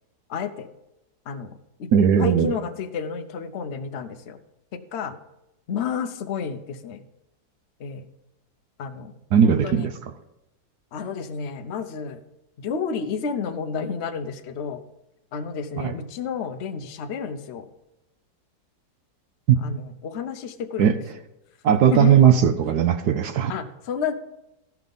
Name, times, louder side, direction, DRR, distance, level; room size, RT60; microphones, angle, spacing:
voice 1, 0.3-0.7 1.3-1.9 2.2-4.4 4.7-5.1 5.7-7.0 7.8-8.1 8.8-9.1 9.4-9.9 10.9-12.2 12.6-14.8 15.3-17.7 19.6-20.9 21.7-22.2 23.5-24.1, left 6 dB, 55° left, 8 dB, 0.7 m, -31 dB
voice 2, 1.9-2.5 9.3-9.9 15.8-15.9 19.5-19.6 20.8-20.9 21.6-23.5, right 8 dB, 70° right, 9 dB, 1.0 m, -18 dB
14.0 x 5.8 x 5.3 m, 0.92 s
omnidirectional pair, 2.0 m